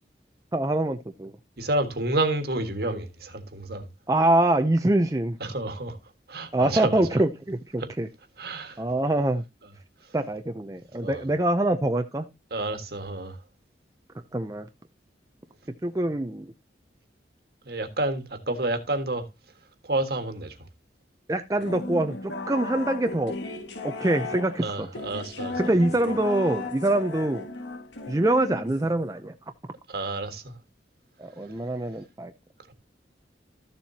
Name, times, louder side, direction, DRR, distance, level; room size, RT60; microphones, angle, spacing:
voice 1, 0.5-1.3 4.1-5.4 6.5-8.1 8.8-9.4 10.1-12.3 14.3-14.7 15.8-16.5 21.3-23.4 23.8-24.9 25.6-27.5 28.1-29.3 31.2-32.3, right 1 dB, 20° right, 0.5 m, -24 dB
voice 2, 1.6-3.9 5.4-6.0 6.3-7.0 7.8-7.9 8.4-8.8 11.0-11.2 12.5-13.4 17.7-19.2 19.8-20.5 24.6-25.7 26.0-26.1 29.9-30.5, right 2 dB, 55° right, 1.6 m, -29 dB
sound 1, 21.6-29.0, left 3 dB, 80° left, 1.8 m, -36 dB
13.5 x 7.2 x 2.8 m
head